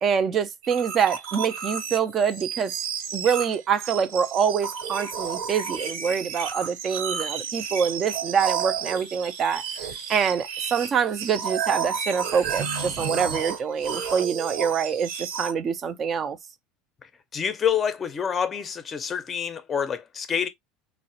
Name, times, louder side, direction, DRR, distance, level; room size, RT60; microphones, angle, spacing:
voice 1, 0.0-2.7 3.1-9.6 10.1-16.4, right 7 dB, 30° right, 0.4 m, -25 dB
sound 1, 0.6-15.5, right 7 dB, 70° right, 1.1 m, -32 dB
voice 2, 17.3-20.5, left 7 dB, 25° left, 0.5 m, -27 dB
3.8 x 2.0 x 2.6 m
supercardioid pair, 130°, 0 cm